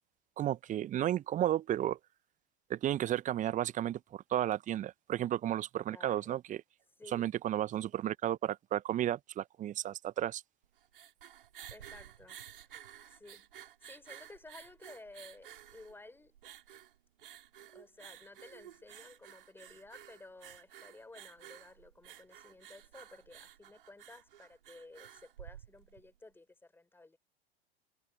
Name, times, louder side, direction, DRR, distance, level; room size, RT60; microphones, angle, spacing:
voice 1, 0.4-2.0 2.7-6.6 7.1-10.4, right 12 dB, 25° right, 1.2 m, -33 dB
voice 2, 5.9-6.3 7.0-7.3 11.7-13.5 13.8-16.4 17.7-27.2, left 2 dB, 5° left, 5.8 m, -55 dB
sound 1, 10.6-26.1, right 10 dB, 65° right, 5.9 m, -53 dB
figure-of-eight pair, 90°, 31 cm